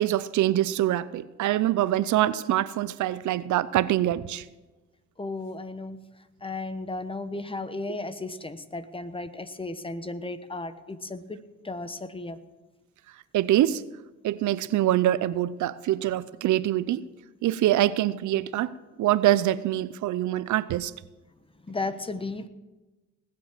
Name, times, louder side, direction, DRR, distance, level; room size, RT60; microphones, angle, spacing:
voice 1, 0.0-4.4 13.3-13.8 14.2-17.1 17.4-20.9, right 13 dB, 75° right, 17 dB, 0.6 m, -24 dB
voice 2, 5.2-6.0 6.4-11.4 11.6-12.4 21.7-22.5, left 2 dB, 20° left, 12 dB, 1.1 m, -34 dB
19.0 x 7.6 x 7.5 m, 1.1 s
cardioid pair, 90°, 30 cm